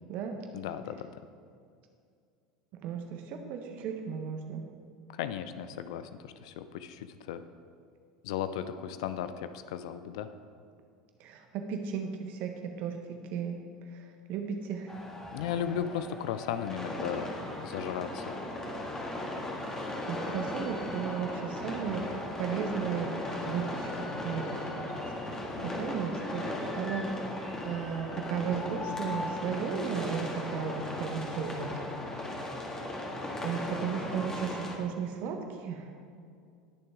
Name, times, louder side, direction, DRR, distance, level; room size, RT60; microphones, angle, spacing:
voice 1, 0.5-1.1 5.1-7.4 8.2-10.3 15.3-18.3 25.6-25.8, left 9 dB, 60° left, 11 dB, 0.6 m, -36 dB
voice 2, 2.8-4.7 11.2-13.6 14.3-14.9 19.6-24.9 25.3-25.4 25.7-26.5 26.8-27.2 27.6-31.8 33.4-35.9, right 7 dB, 50° right, 4 dB, 1.5 m, -35 dB
sound 1, 14.9-34.8, left 1 dB, 15° left, 2.1 m, -37 dB
20.0 x 6.7 x 3.7 m, 2.3 s
figure-of-eight pair, 75°, 4 cm